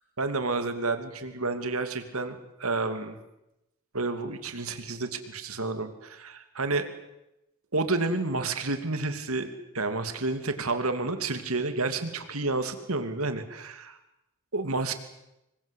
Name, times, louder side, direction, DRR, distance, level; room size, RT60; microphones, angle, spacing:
voice 1, 0.2-3.2 3.9-6.8 7.7-9.5 9.7-14.0 14.5-15.0, right 3 dB, 75° right, 9 dB, 2.8 m, -30 dB
26.5 x 22.5 x 8.4 m, 0.89 s
head